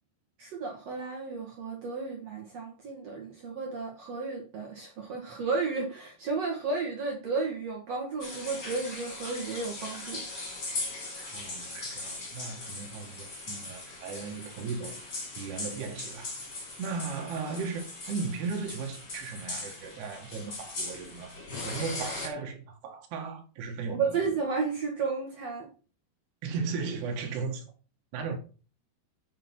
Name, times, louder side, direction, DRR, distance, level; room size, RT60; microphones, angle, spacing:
voice 1, 0.4-10.3 23.9-25.7, right 4 dB, 55° right, 1.9 m, -33 dB
sound 1, 8.2-22.3, left 2 dB, 30° left, 2.6 m, -39 dB
voice 2, 11.2-15.0 15.4-16.4 16.8-21.3 21.6-24.2 26.4-27.7 28.1-28.4, right 5 dB, 75° right, 3.5 m, -36 dB
8.8 x 5.5 x 6.0 m
omnidirectional pair, 5.0 m